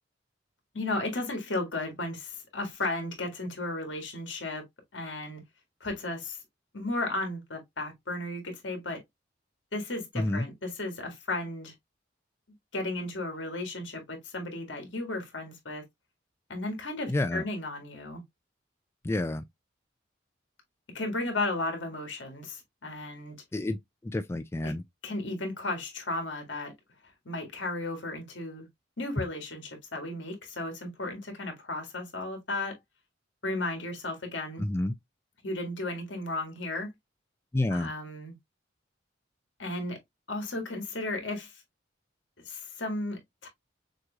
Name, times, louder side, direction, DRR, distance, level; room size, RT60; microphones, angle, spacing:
voice 1, 0.7-4.6 4.9-5.4 5.8-6.4 6.7-9.0 9.7-11.7 12.7-15.8 16.5-18.2 20.9-23.4 24.6-24.7 25.0-26.7 27.3-28.7 29.0-32.8 33.4-34.6 35.4-36.9 37.7-38.3 39.6-40.0 40.3-41.5 42.5-43.5, left 2 dB, 70° left, 2.0 m, -34 dB
voice 2, 10.1-10.5 17.1-17.4 19.0-19.4 23.5-23.8 24.0-24.8 34.6-34.9 37.5-37.9, left 2 dB, 15° left, 0.3 m, -29 dB
6.4 x 3.0 x 2.3 m
head